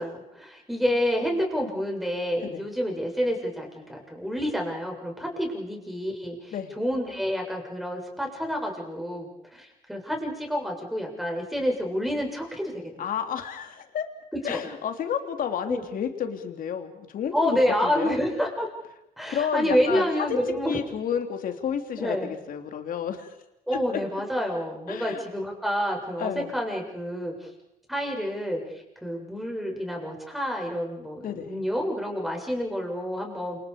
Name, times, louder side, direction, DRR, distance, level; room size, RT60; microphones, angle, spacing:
voice 1, 0.0-12.9 14.3-14.6 15.7-15.8 17.3-18.7 19.2-20.8 22.0-22.3 23.7-27.5 27.9-33.6, equal, ahead, 1 dB, 7.3 m, -28 dB
voice 2, 13.0-14.1 14.4-18.2 19.3-20.4 20.7-23.3 24.9-25.2 26.2-26.5 31.2-31.6, left 8 dB, 55° left, 6 dB, 3.1 m, -31 dB
29.0 x 28.0 x 5.1 m, 0.85 s
cardioid pair, 110°, 17 cm